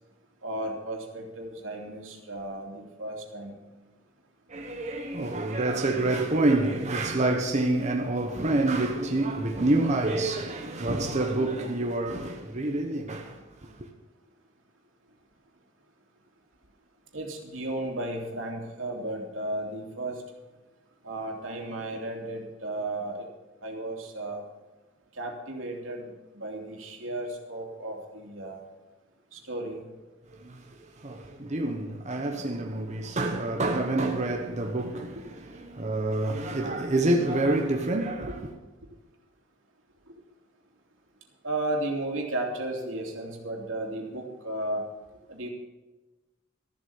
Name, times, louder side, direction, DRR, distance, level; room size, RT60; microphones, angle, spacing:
voice 1, 0.4-3.6 17.1-20.2 21.0-23.3 23.6-24.4 25.1-28.6 29.3-29.8 41.4-44.8 45.3-45.5, right 1 dB, 85° right, 2.9 m, -34 dB
voice 2, 4.5-13.9 30.4-30.7 31.0-38.6, right 2 dB, 35° right, 1.1 m, -27 dB
13.5 x 7.6 x 7.0 m
head